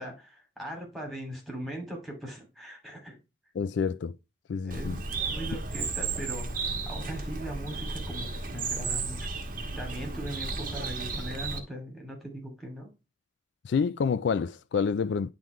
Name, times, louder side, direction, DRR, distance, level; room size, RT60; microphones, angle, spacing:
voice 1, 0.0-3.2 4.6-9.2 9.8-12.9, right 1 dB, ahead, 2.5 m, -40 dB
voice 2, 3.5-4.1 4.5-5.0 13.6-15.3, left 6 dB, 70° left, 0.4 m, -28 dB
Bird, 4.7-11.6, right 3 dB, 50° right, 1.3 m, -33 dB
10.5 x 3.8 x 3.1 m
head